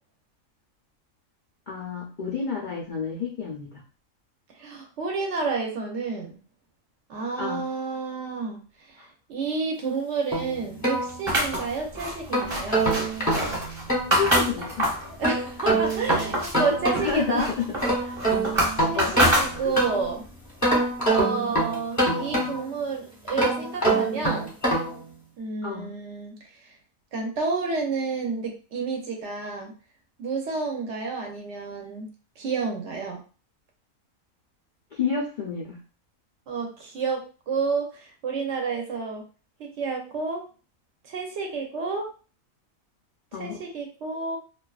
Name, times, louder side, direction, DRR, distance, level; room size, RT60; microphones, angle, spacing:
voice 1, 1.7-3.7 7.4-7.6 14.2-14.9 17.0-17.7 18.9-19.1 19.6-19.7 25.6-25.9 35.0-35.8 43.3-43.6, left 6 dB, 80° left, -3 dB, 0.4 m, -29 dB
voice 2, 4.6-6.4 7.1-12.9 15.2-17.5 18.1-18.2 18.8-20.3 21.0-24.5 25.4-26.7 27.1-29.7 30.2-32.1 32.4-33.2 36.5-39.3 39.6-40.5 41.0-42.1 43.3-44.4, right 4 dB, 65° right, 2 dB, 0.8 m, -30 dB
sound 1, 10.3-11.7 12.1-14.5 15.2-17.3 17.6-20.1 20.6-22.8 23.3-25.0, right 2 dB, 20° left, 0.5 m, -25 dB
sound 2, 11.3-15.1 15.5-16.6 17.0-20.0, equal, 25° right, 0.9 m, -26 dB
2.4 x 2.2 x 2.3 m, 0.37 s
omnidirectional pair, 1.4 m